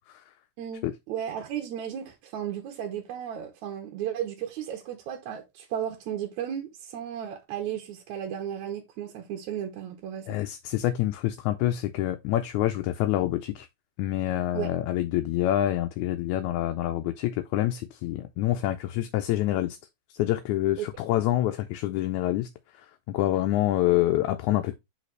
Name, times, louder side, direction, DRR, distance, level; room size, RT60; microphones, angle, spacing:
voice 1, 0.6-10.4 14.5-14.8 20.8-20.9, right 10 dB, 75° right, 2.2 m, -34 dB
voice 2, 10.3-13.7 14.0-19.8 20.1-22.5 23.1-24.8, left 14 dB, 80° left, 1.9 m, -26 dB
6.4 x 5.0 x 3.2 m
omnidirectional pair, 3.5 m